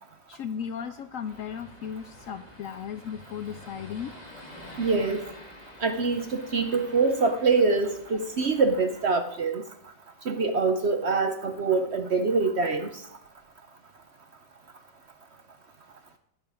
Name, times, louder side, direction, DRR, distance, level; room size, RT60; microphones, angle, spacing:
voice 1, 0.3-4.1, left 8 dB, 70° left, 11 dB, 0.8 m, -36 dB
sound 1, 1.2-9.1, left 1 dB, 25° left, 2.1 m, -48 dB
voice 2, 4.8-5.2 5.8-9.6 10.3-12.9, right 4 dB, 55° right, 7 dB, 0.8 m, -24 dB
12.5 x 8.1 x 4.9 m, 0.71 s
omnidirectional pair, 1.8 m